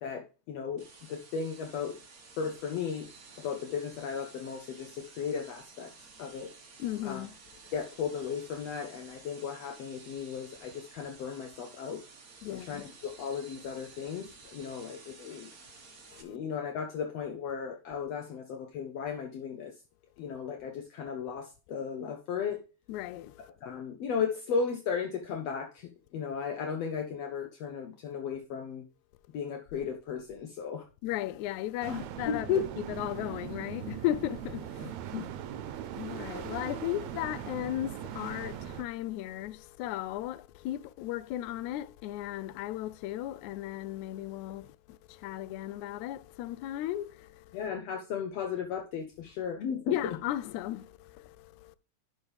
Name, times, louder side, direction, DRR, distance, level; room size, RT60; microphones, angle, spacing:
voice 1, 0.0-2.0 2.4-3.1 3.4-5.9 6.2-6.5 7.0-7.2 7.7-12.0 12.5-15.5 16.2-19.8 20.2-22.6 23.6-28.8 29.3-30.9 31.9-32.7 34.8-35.3 47.5-50.2, left 6 dB, 70° left, 1.8 m, -35 dB
sound 1, 0.8-16.2, right 4 dB, 40° right, 1.4 m, -53 dB
voice 2, 6.8-7.4 12.4-12.8 16.1-16.4 22.9-23.5 31.0-32.5 32.8-35.1 35.9-47.6 49.9-51.8, left 13 dB, 85° left, 1.9 m, -36 dB
sound 2, 31.8-38.8, right 10 dB, 85° right, 2.0 m, -40 dB
11.5 x 5.6 x 3.4 m
omnidirectional pair, 3.3 m